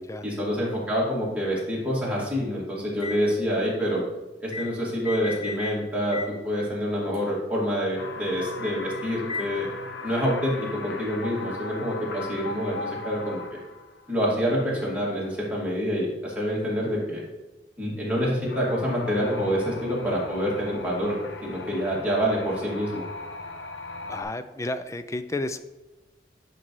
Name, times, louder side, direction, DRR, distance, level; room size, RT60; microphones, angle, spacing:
voice 1, 0.2-4.0 4.4-9.7 10.0-10.6 10.8-13.6 14.1-17.2 17.8-21.2 21.4-23.1, equal, 10° right, -6 dB, 2.3 m, -27 dB
sound 1, 3.0-3.2 4.5-4.7 5.0-5.8 6.1-6.3 7.1-7.2 9.3-9.6, left 4 dB, 35° left, 2.2 m, -34 dB
sound 2, 8.0-14.2 18.5-24.2, left 3 dB, 80° left, 0.8 m, -38 dB
voice 2, 24.1-25.6, left 2 dB, 15° left, 11 dB, 0.4 m, -31 dB
9.7 x 5.3 x 3.2 m, 1.1 s
head